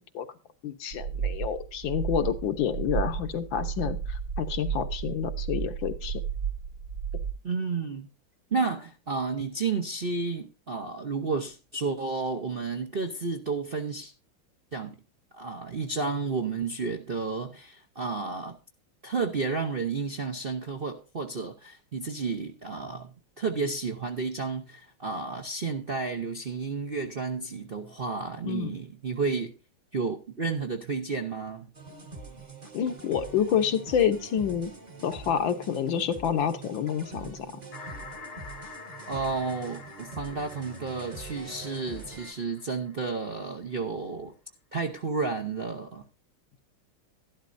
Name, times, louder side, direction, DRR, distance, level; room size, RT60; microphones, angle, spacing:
voice 1, 0.6-6.2 28.5-28.7 32.7-34.7 35.0-37.6, left 8 dB, 70° left, 1.7 m, -28 dB
sound 1, 0.9-7.3, right 7 dB, 85° right, 3.2 m, -33 dB
voice 2, 7.4-8.1 8.5-14.1 14.7-15.0 15.3-18.6 19.0-29.5 29.9-31.7 39.1-44.3 44.7-46.0, right 4 dB, 45° right, 0.7 m, -31 dB
sound 2, 31.7-42.3, right 3 dB, 25° right, 1.1 m, -44 dB
sound 3, 37.7-43.4, left 5 dB, 85° left, 2.1 m, -47 dB
12.5 x 12.0 x 2.6 m
omnidirectional pair, 2.2 m